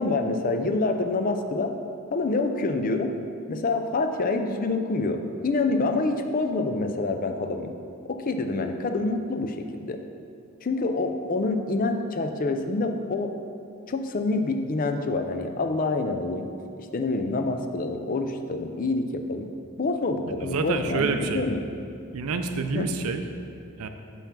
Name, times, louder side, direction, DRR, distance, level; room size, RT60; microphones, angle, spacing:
voice 1, 0.0-1.7 2.1-3.1 3.5-7.7 8.1-10.0 10.6-13.3 13.9-16.5 16.8-19.5 19.8-21.6 22.7-22.9, left 3 dB, 40° left, 6 dB, 0.4 m, -27 dB
voice 2, 20.4-21.4 22.1-23.2 23.8-23.9, right 4 dB, 75° right, 7 dB, 0.5 m, -28 dB
5.9 x 5.4 x 5.8 m, 2.5 s
head